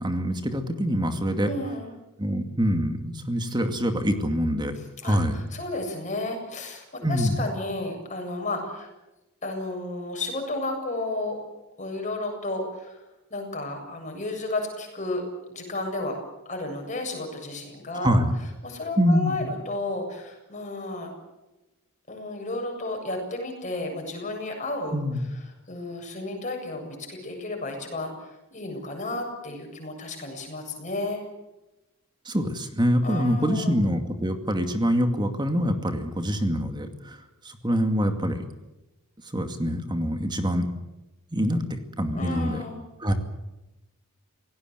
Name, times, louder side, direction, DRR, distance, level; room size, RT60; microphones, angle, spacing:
voice 1, 0.0-1.5 2.2-4.8 5.0-5.4 7.0-7.4 18.0-18.3 19.0-19.4 24.9-25.3 32.3-38.4 39.3-40.7 41.3-42.6 43.0-43.1, equal, 20° right, 6 dB, 2.3 m, -25 dB
voice 2, 1.4-1.9 4.8-8.9 9.4-11.4 11.8-13.0 13.3-15.2 15.5-16.2 16.5-18.2 18.6-21.1 22.1-25.0 25.7-31.2 33.0-33.8 42.1-42.8, left 2 dB, 35° left, 3 dB, 7.6 m, -32 dB
27.5 x 18.0 x 8.0 m, 1.0 s
head